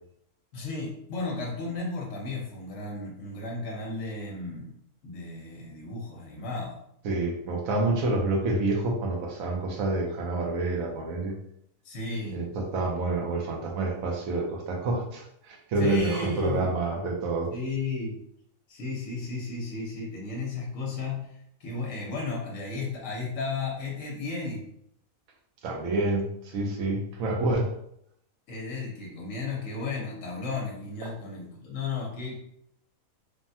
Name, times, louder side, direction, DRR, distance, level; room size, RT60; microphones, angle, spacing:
voice 1, 0.5-4.7 5.0-6.8 11.8-12.4 15.8-16.7 17.5-18.2 18.7-21.3 21.6-24.7 28.5-32.4, left 3 dB, 65° left, -2 dB, 1.0 m, -34 dB
voice 2, 7.0-11.4 12.3-17.5 25.6-27.7, right 2 dB, 80° right, 0 dB, 1.1 m, -28 dB
3.3 x 2.1 x 2.6 m, 0.72 s
omnidirectional pair, 1.5 m